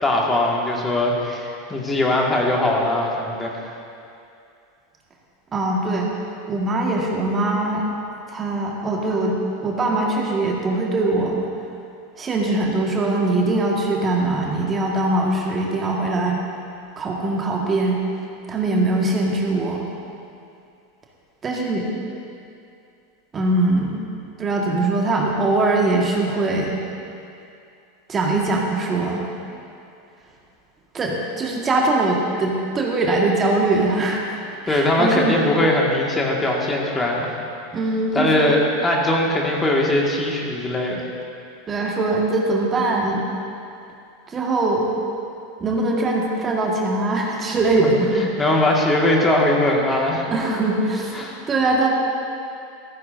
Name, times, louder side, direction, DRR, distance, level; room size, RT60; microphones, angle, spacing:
voice 1, 0.0-3.5 34.7-37.3 38.1-41.0 47.8-50.3 50.8-50.9 51.1-51.3, left 1 dB, 15° left, -1 dB, 1.9 m, -20 dB
voice 2, 5.5-6.1 6.5-7.8 8.3-9.4 9.6-11.5 12.2-16.4 17.0-18.0 18.5-19.9 21.4-21.9 23.3-24.0 24.4-26.8 28.1-29.3 30.9-34.2 34.6-35.4 37.7-38.5 41.7-43.2 44.3-44.9 45.6-48.1 50.3-51.2 51.5-51.9, right 2 dB, 25° right, -2 dB, 1.7 m, -21 dB
15.0 x 15.0 x 2.7 m, 2.6 s
figure-of-eight pair, 85°, 0 cm